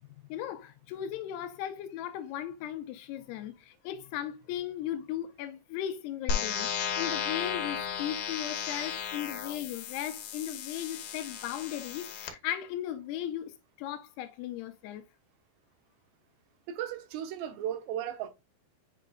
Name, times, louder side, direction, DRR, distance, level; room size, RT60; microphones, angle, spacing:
voice 1, 0.3-6.7 7.0-15.0, left 11 dB, 85° left, 2.7 m, -37 dB
sound 1, 6.3-12.3, left 7 dB, 70° left, 2.7 m, -34 dB
voice 2, 16.7-18.3, right 10 dB, 85° right, 3.1 m, -35 dB
8.5 x 4.9 x 2.4 m
omnidirectional pair, 4.8 m